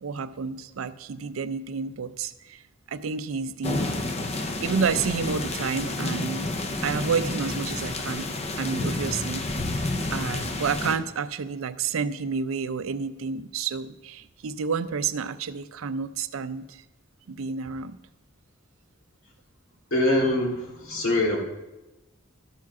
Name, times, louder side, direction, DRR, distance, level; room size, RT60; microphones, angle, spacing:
voice 1, 0.0-2.6 2.9-3.9 4.6-6.4 6.8-8.3 8.6-9.5 10.1-16.8 17.3-18.0, right 5 dB, 90° right, 13 dB, 0.5 m, -30 dB
sound 1, 3.6-11.0, left 2 dB, 30° left, 0.7 m, -30 dB
voice 2, 19.9-21.4, left 1 dB, 80° left, -1 dB, 2.1 m, -23 dB
12.5 x 4.8 x 6.0 m, 1.0 s
head